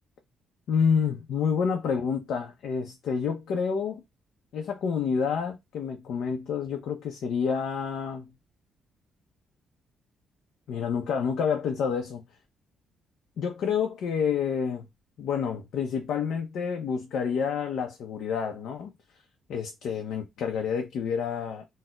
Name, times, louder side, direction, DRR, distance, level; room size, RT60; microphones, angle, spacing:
voice 1, 0.7-4.0 4.5-8.3 10.7-12.2 13.4-14.9 15.2-18.9 19.5-21.6, left 6 dB, 75° left, 0.5 m, -28 dB
4.1 x 2.0 x 2.2 m
cardioid pair, 135°, 0 cm